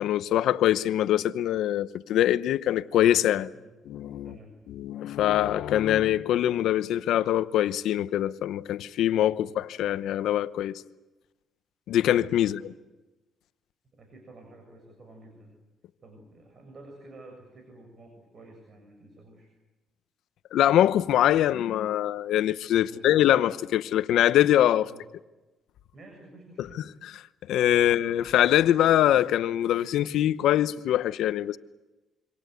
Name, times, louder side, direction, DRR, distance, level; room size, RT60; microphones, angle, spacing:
voice 1, 0.0-3.5 3.9-4.3 4.7-10.8 11.9-12.7 20.5-24.9 26.6-26.7 27.5-31.6, left 12 dB, 80° left, 0.9 m, -23 dB
voice 2, 13.9-15.5 16.0-19.5 22.8-23.1 24.8-25.0 25.9-26.8 27.8-27.9 28.2-28.3, right 2 dB, 45° right, 7.0 m, -50 dB
27.0 x 25.0 x 8.2 m
cardioid pair, 90°, 0 cm